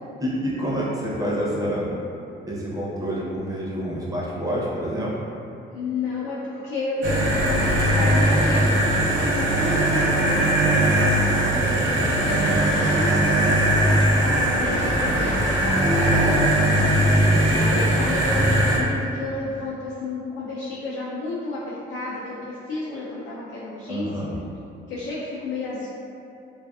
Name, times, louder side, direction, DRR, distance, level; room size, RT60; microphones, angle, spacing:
voice 1, 0.2-1.9 2.5-5.1 12.5-12.9 16.5-18.0 23.9-24.4, equal, 15° right, -6 dB, 0.6 m, -28 dB
voice 2, 5.7-8.7 9.2-16.0 17.5-24.1 24.9-25.9, left 3 dB, 75° left, -7 dB, 0.5 m, -31 dB
sound 1, 7.0-18.8, right 1 dB, 70° right, 0.6 m, -20 dB
2.5 x 2.3 x 2.3 m, 2.7 s
cardioid pair, 90°, 20 cm